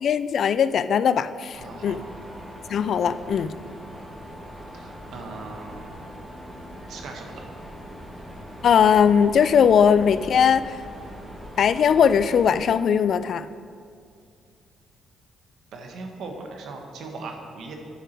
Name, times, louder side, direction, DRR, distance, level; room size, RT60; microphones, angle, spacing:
voice 1, 0.0-2.0 2.7-3.5 8.6-10.7 11.6-13.5, left 7 dB, 60° left, 14 dB, 0.3 m, -19 dB
Mechanisms, 1.5-12.6, equal, 10° right, 1.9 m, -41 dB
voice 2, 1.6-2.0 4.7-6.1 6.9-7.4 15.7-17.7, right 3 dB, 70° right, 3 dB, 1.3 m, -39 dB
10.5 x 7.1 x 4.5 m, 2.3 s
cardioid pair, 90°, 0 cm